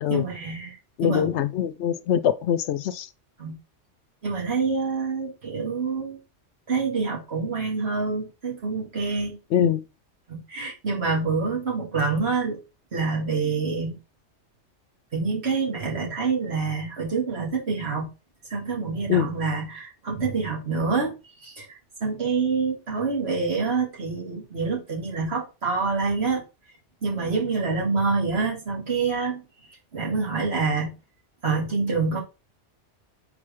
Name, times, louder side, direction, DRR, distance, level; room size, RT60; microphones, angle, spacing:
voice 1, 0.1-1.3 3.4-3.6 4.2-6.2 6.7-9.4 10.3-12.6 12.9-14.0 15.1-18.1 18.5-21.1 21.4-21.7 22.0-26.4 27.0-29.4 29.9-30.9 31.4-32.2, right 4 dB, 60° right, 2.3 m, -26 dB
voice 2, 1.0-3.1 9.5-9.8 19.1-19.3, left 9 dB, 70° left, 0.8 m, -23 dB
4.4 x 4.3 x 5.0 m
omnidirectional pair, 1.2 m